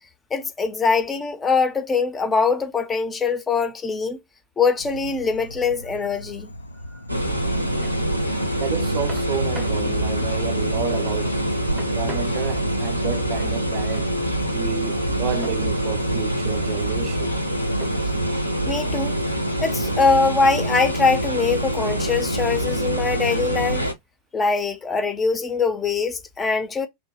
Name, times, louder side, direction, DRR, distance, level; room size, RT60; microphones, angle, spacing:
voice 1, 0.3-4.2 4.6-6.5 6.9-7.0 18.7-19.2 19.6-23.9 24.3-26.9, left 4 dB, 20° left, 0.6 m, -22 dB
Insect / Frog, 4.8-17.9, left 1 dB, 80° left, 0.3 m, -38 dB
sound 1, 7.1-23.9, right 1 dB, 90° right, 0.6 m, -25 dB
sound 2, 7.8-8.0 9.1-9.9 11.8-12.8 15.4-15.7 16.4-16.9 17.8-18.2, right 3 dB, 20° right, 0.8 m, -41 dB
voice 2, 8.6-14.1 14.5-17.4, right 10 dB, 40° right, 0.4 m, -31 dB
2.9 x 2.2 x 4.1 m
figure-of-eight pair, 90°, 0 cm